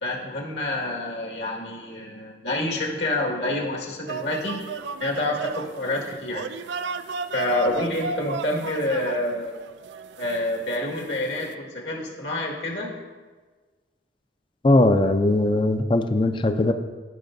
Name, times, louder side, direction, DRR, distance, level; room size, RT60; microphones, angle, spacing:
voice 1, 0.0-4.6 5.0-6.5 7.3-9.5 10.2-13.0, left 1 dB, 75° left, -2 dB, 1.8 m, -27 dB
sound 1, 4.1-11.5, right 5 dB, 80° right, 0.4 m, -35 dB
voice 2, 14.6-16.7, left 2 dB, 30° left, 8 dB, 0.4 m, -19 dB
15.5 x 5.5 x 2.6 m, 1.4 s
head